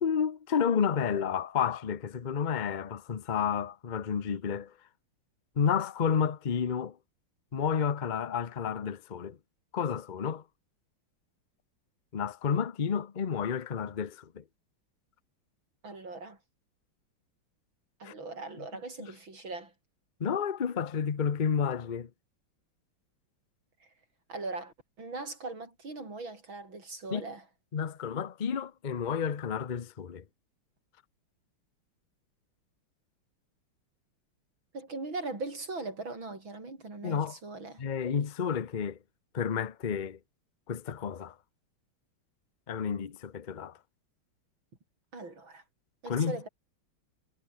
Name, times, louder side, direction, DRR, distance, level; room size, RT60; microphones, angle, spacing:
voice 1, 0.0-4.7 5.6-7.0 7.5-9.4 9.7-10.4 12.1-14.4 18.0-18.1 20.2-22.1 27.1-27.2 27.7-30.2 37.0-37.4 37.8-39.0 39.3-40.2 40.7-41.3 42.7-43.8 46.1-46.5, left 7 dB, 55° left, 0.5 m, -31 dB
voice 2, 15.8-16.4 18.0-19.7 23.8-23.9 24.3-27.4 34.7-37.8 45.1-45.6 46.0-46.5, right 3 dB, 65° right, 7.2 m, -40 dB
omnidirectional pair, 2.3 m